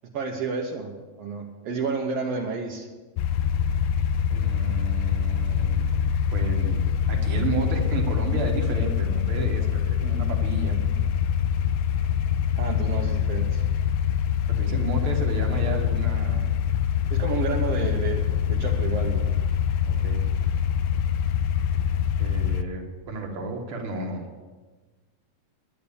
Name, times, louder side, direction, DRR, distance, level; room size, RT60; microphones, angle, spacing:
voice 1, 0.1-2.9 12.6-13.7 17.1-19.3, right 4 dB, 65° right, -1 dB, 1.6 m, -30 dB
sound 1, 3.2-22.6, left 8 dB, 90° left, 2.2 m, -24 dB
voice 2, 4.3-5.8 6.3-10.8 14.5-16.5 19.9-20.2 20.5-20.6 22.2-24.2, right 3 dB, 50° right, 2 dB, 2.1 m, -32 dB
10.5 x 10.0 x 7.0 m, 1.3 s
omnidirectional pair, 3.8 m